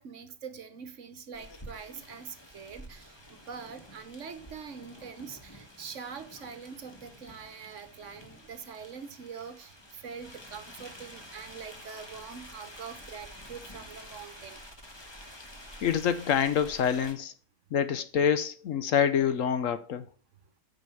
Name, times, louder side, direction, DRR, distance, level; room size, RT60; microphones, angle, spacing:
voice 1, 0.0-14.6, right 6 dB, 60° right, 1.2 m, -44 dB
sound 1, 1.3-17.1, equal, 20° left, 1.3 m, -49 dB
voice 2, 15.8-17.3 17.7-20.1, left 8 dB, 65° left, 1.0 m, -26 dB
9.3 x 5.3 x 5.6 m
omnidirectional pair, 1.6 m